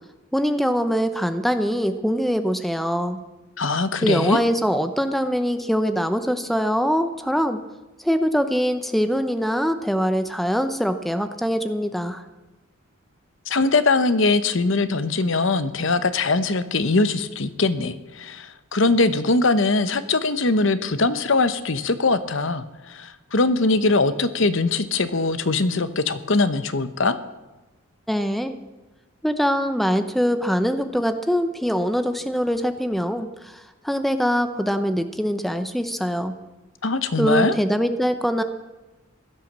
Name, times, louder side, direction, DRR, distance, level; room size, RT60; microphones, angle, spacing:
voice 1, 0.3-3.2 4.0-7.6 8.0-12.2 28.1-28.6 29.2-36.3 37.2-38.4, equal, ahead, 9 dB, 0.7 m, -23 dB
voice 2, 3.6-4.4 13.5-27.2 36.8-37.5, left 3 dB, 65° left, 13 dB, 0.9 m, -21 dB
16.0 x 12.0 x 7.4 m, 1.1 s
head